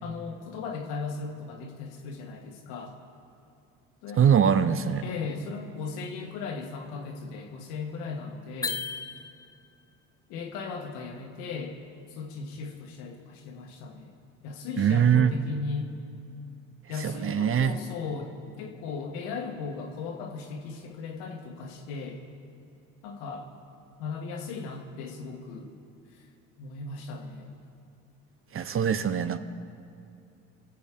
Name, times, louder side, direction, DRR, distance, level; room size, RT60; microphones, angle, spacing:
voice 1, 0.0-3.0 4.0-4.7 5.0-8.8 10.3-11.8 12.1-14.1 14.4-15.9 16.9-22.2 23.0-23.5 24.0-25.7 26.1-26.3 26.6-27.5, left 4 dB, 75° left, 2 dB, 1.5 m, -37 dB
voice 2, 4.2-5.0 14.8-15.3 17.0-17.7 28.5-29.4, right 8 dB, 35° right, 12 dB, 0.6 m, -22 dB
sound 1, 8.6-9.8, left 4 dB, 10° left, 0.4 m, -35 dB
21.0 x 7.7 x 3.7 m, 2.5 s
hypercardioid pair, 60°, 39 cm